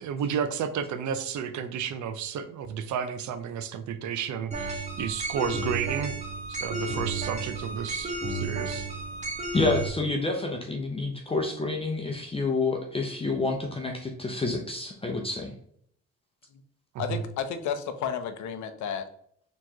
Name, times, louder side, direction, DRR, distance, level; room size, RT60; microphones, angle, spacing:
voice 1, 0.0-6.1 6.5-8.9 16.9-17.2, right 7 dB, 70° right, 10 dB, 0.5 m, -32 dB
sound 1, 4.5-9.9, right 2 dB, 25° right, 1.1 m, -32 dB
voice 2, 9.5-15.5, left 3 dB, 20° left, 2 dB, 0.6 m, -28 dB
voice 3, 17.0-19.1, left 7 dB, 75° left, 9 dB, 0.6 m, -32 dB
4.3 x 3.0 x 2.8 m, 0.66 s
cardioid pair, 90°, 30 cm